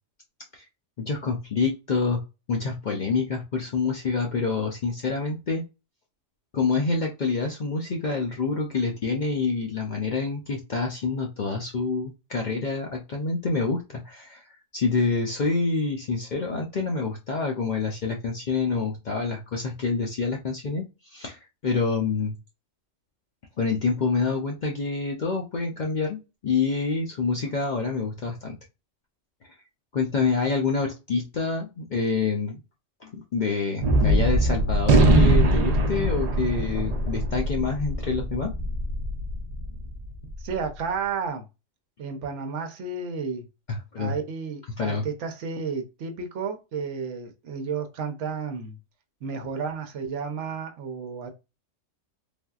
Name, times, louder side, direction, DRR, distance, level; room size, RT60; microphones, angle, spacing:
voice 1, 1.0-2.2 2.5-5.6 6.5-14.4 14.7-20.8 21.1-22.4 23.6-28.6 29.9-32.6 33.0-38.5 43.7-44.1 44.8-45.0, left 4 dB, 55° left, 0.5 m, -27 dB
Gunshot gunfire, 33.8-40.4, right 1 dB, 55° right, 0.4 m, -22 dB
voice 2, 40.4-41.5 42.0-43.5 44.0-48.8 49.2-51.3, right 5 dB, 70° right, 1.0 m, -32 dB
3.4 x 2.6 x 2.3 m
omnidirectional pair, 1.3 m